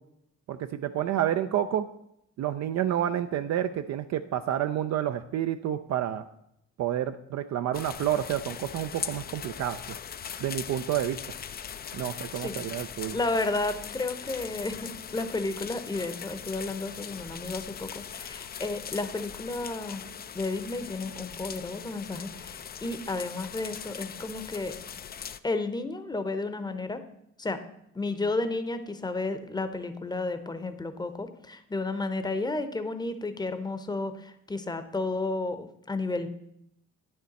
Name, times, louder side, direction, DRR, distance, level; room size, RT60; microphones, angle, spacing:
voice 1, 0.5-1.9 2.4-6.2 6.8-10.0 10.4-11.2 11.9-13.2, right 11 dB, 65° right, 8 dB, 0.5 m, -29 dB
sound 1, 7.7-25.4, left 8 dB, 35° left, 0.4 m, -40 dB
voice 2, 13.1-20.0 20.3-24.7 25.4-27.0 27.4-27.6 27.9-36.3, left 2 dB, 15° left, 10 dB, 0.8 m, -32 dB
9.2 x 6.6 x 4.1 m, 0.78 s
cardioid pair, 90°, 30 cm